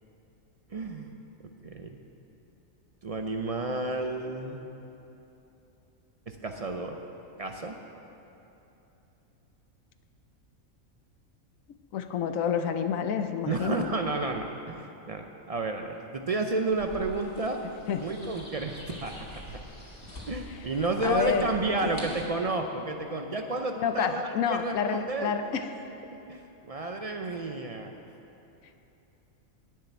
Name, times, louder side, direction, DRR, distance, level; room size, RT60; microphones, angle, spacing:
voice 1, 0.7-1.1 1.4-2.0 3.0-4.7 6.3-7.0 7.4-7.8 13.5-17.6 18.0-19.6 20.2-25.3 26.3-27.9, right 2 dB, 55° right, 4 dB, 0.4 m, -31 dB
voice 2, 11.9-13.9 17.9-18.1 20.5-20.7 21.0-21.5 21.8-21.9 23.8-25.7, left 7 dB, 75° left, 8 dB, 1.1 m, -29 dB
sound 1, 16.7-22.2, left 1 dB, 40° left, 2.2 m, -44 dB
9.9 x 6.7 x 9.1 m, 3.0 s
omnidirectional pair, 1.4 m